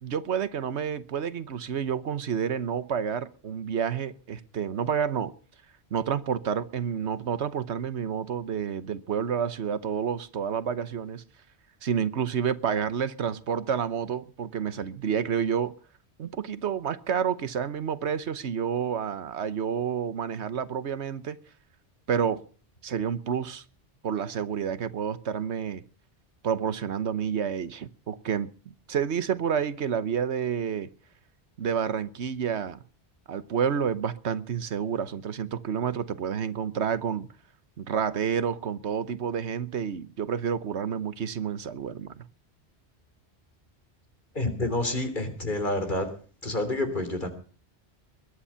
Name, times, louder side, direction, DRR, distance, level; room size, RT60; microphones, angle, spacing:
voice 1, 0.0-5.3 5.9-11.2 11.8-15.7 16.2-21.4 22.1-22.4 22.8-23.6 24.0-25.8 26.4-28.5 28.9-30.9 31.6-32.8 33.3-37.3 37.8-42.3, right 7 dB, 85° right, 1.3 m, -29 dB
voice 2, 44.4-46.1 46.4-47.3, left 2 dB, 45° left, 3.6 m, -28 dB
21.5 x 10.0 x 5.6 m
omnidirectional pair, 1.1 m